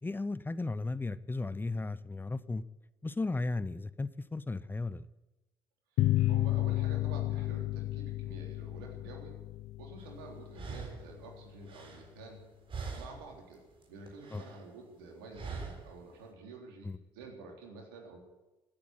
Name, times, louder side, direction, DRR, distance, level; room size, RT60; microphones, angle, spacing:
voice 1, 0.0-2.6 3.0-5.0 14.3-14.4 16.8-17.0, left 3 dB, 20° left, 17 dB, 0.7 m, -35 dB
sound 1, 6.0-11.1, left 16 dB, 65° left, 0.4 m, -32 dB
voice 2, 6.3-9.3 9.8-12.4 12.9-13.6 13.9-18.2, right 3 dB, 90° right, 1 dB, 3.6 m, -49 dB
sound 2, 10.0-10.1 10.5-12.4 12.7-13.4 13.7-14.6 15.3-16.0, right 5 dB, 50° right, 4.0 m, -43 dB
17.0 x 8.6 x 9.7 m, 1.1 s
hypercardioid pair, 60°, 11 cm